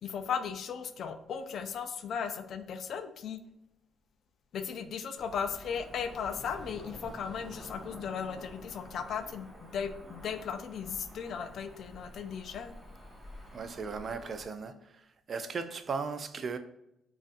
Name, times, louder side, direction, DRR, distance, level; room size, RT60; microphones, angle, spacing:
voice 1, 0.0-3.4 4.5-12.7, left 7 dB, 65° left, 0.4 m, -36 dB
Cricket / Motor vehicle (road), 5.2-14.5, equal, 15° right, 1.4 m, -49 dB
voice 2, 13.5-14.8 15.3-16.6, right 5 dB, 45° right, 0.4 m, -36 dB
5.1 x 2.4 x 2.5 m
cardioid pair, 90°, 0 cm